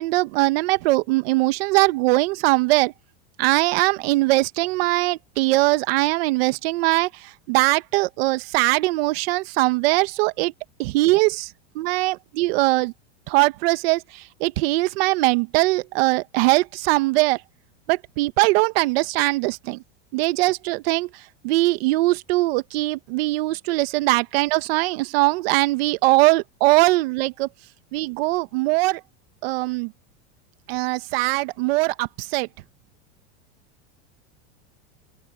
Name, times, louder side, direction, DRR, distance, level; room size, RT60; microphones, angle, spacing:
voice 1, 0.0-2.9 3.4-10.5 10.8-11.5 11.7-12.9 13.3-17.4 17.9-19.8 20.1-27.5 27.9-29.0 29.4-29.9 30.7-32.5, right 21 dB, 60° right, 1.5 m, -21 dB
supercardioid pair, 150°, 34 cm